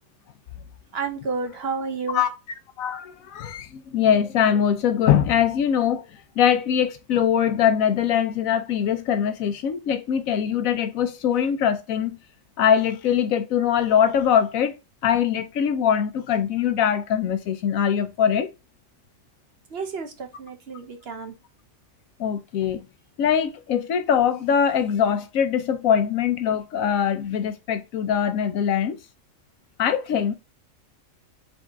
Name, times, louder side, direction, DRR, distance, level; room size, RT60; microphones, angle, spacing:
voice 1, 0.9-2.2 19.7-21.4, right 4 dB, 55° right, 1.0 m, -31 dB
voice 2, 2.8-12.2 12.6-14.7 15.0-18.5 22.2-22.9 23.2-29.0 29.8-30.3, left 8 dB, 85° left, 1.1 m, -22 dB
4.0 x 3.6 x 3.4 m
omnidirectional pair, 1.4 m